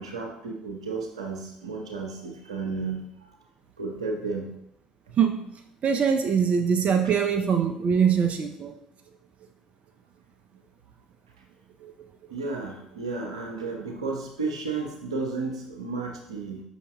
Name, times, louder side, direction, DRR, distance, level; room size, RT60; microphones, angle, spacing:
voice 1, 0.0-3.3 3.8-4.5 5.1-5.2 12.3-16.6, right 4 dB, 85° right, 2 dB, 0.8 m, -33 dB
voice 2, 5.2-5.5 5.8-8.7 11.8-11.9, right 7 dB, 45° right, 6 dB, 0.6 m, -23 dB
8.2 x 5.8 x 2.2 m, 0.77 s
figure-of-eight pair, 55°, 3 cm